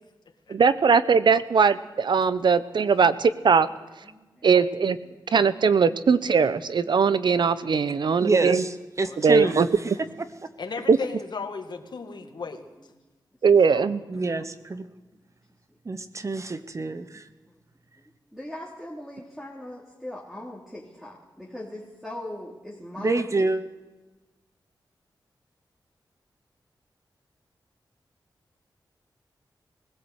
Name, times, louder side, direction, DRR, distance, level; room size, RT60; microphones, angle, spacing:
voice 1, 0.5-3.7 4.4-5.0 5.3-8.6 9.2-9.7 10.9-11.0 13.4-14.0, right 5 dB, 70° right, 14 dB, 0.9 m, -20 dB
voice 2, 4.1-4.5 12.2-12.3 16.7-16.9 17.5-17.6 18.3-23.5, left 1 dB, 5° right, -4 dB, 3.1 m, -40 dB
voice 3, 8.2-9.7 14.1-14.9 15.8-17.3 23.0-23.6, right 3 dB, 40° right, 11 dB, 1.0 m, -27 dB
voice 4, 9.0-9.5 9.9-10.0 10.6-12.6 13.7-14.4, left 4 dB, 65° left, 4 dB, 2.2 m, -36 dB
20.0 x 16.0 x 8.1 m, 1.2 s
wide cardioid pair, 80°, 8 cm